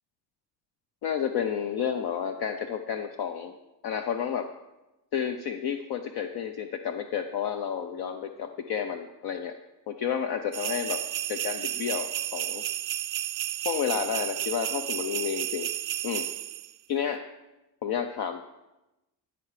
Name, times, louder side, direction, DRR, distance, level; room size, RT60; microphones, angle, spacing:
voice 1, 1.0-3.5 3.8-4.5 5.1-9.6 9.9-11.0 11.3-12.6 13.6-15.7 16.0-16.2 16.9-17.2 17.8-18.4, left 8 dB, 50° left, 6 dB, 0.6 m, -31 dB
sound 1, 10.5-16.7, right 13 dB, 45° right, 0.4 m, -32 dB
10.0 x 4.9 x 4.8 m, 0.99 s
hypercardioid pair, 50°, 48 cm